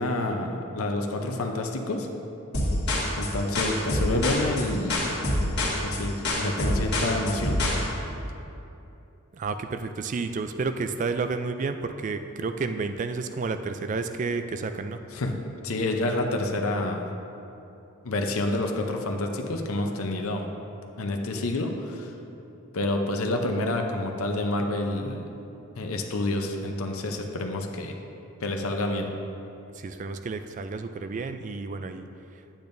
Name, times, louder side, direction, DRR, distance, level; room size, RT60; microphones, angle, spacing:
voice 1, 0.0-2.1 3.2-5.0 5.8-7.6 15.1-15.3 15.6-17.1 18.0-20.5 21.0-22.1 22.7-25.2 25.8-28.0 28.4-29.1, left 2 dB, 75° left, 3 dB, 0.7 m, -28 dB
sound 1, 2.5-7.8, left 1 dB, 50° left, 1.6 m, -26 dB
voice 2, 9.3-15.0 29.7-32.0, right 4 dB, 35° right, 8 dB, 0.3 m, -31 dB
10.0 x 8.7 x 2.6 m, 2.8 s
head